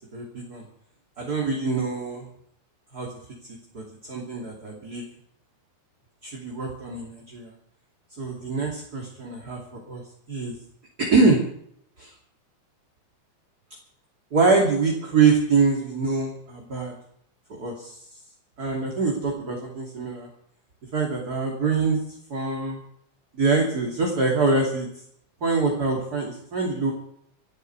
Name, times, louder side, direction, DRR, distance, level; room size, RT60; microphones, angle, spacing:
voice 1, 0.1-0.6 1.2-2.3 2.9-3.1 3.7-5.0 6.2-7.5 8.2-10.0 10.3-10.5 11.0-11.4 12.0-12.1 14.3-16.9 17.5-18.0 18.6-20.3 20.9-22.0 22.3-22.8 23.3-24.9 25.4-26.9, right 4 dB, 30° right, -1 dB, 3.2 m, -24 dB
27.5 x 10.5 x 4.7 m, 0.69 s
omnidirectional pair, 3.5 m